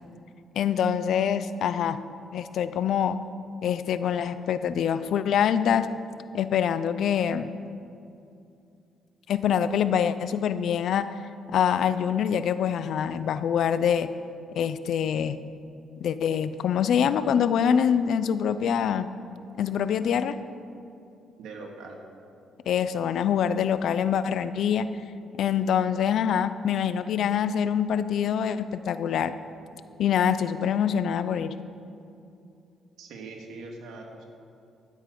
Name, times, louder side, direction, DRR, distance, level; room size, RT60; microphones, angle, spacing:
voice 1, 0.6-2.0 2.3-3.2 3.6-5.9 6.3-7.5 9.3-11.1 11.5-14.1 14.5-15.4 16.0-19.1 19.6-20.4 22.7-24.9 25.4-29.3 30.0-31.5, left 8 dB, 70° left, 13 dB, 0.5 m, -25 dB
voice 2, 21.4-22.0 33.0-34.3, right 3 dB, 80° right, 1 dB, 2.0 m, -41 dB
12.5 x 9.3 x 5.2 m, 2.6 s
cardioid pair, 90°, 0 cm